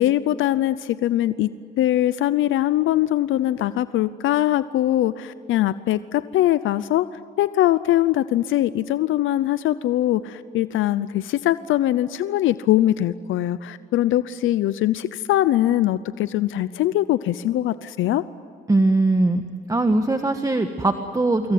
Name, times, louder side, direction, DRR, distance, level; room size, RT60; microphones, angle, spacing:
voice 1, 0.0-1.5 1.8-7.1 7.4-18.2, left 13 dB, 80° left, 15 dB, 0.7 m, -22 dB
voice 2, 18.7-21.5, right 2 dB, 15° right, 6 dB, 1.5 m, -21 dB
25.5 x 22.5 x 9.5 m, 2.3 s
cardioid pair, 90°, 20 cm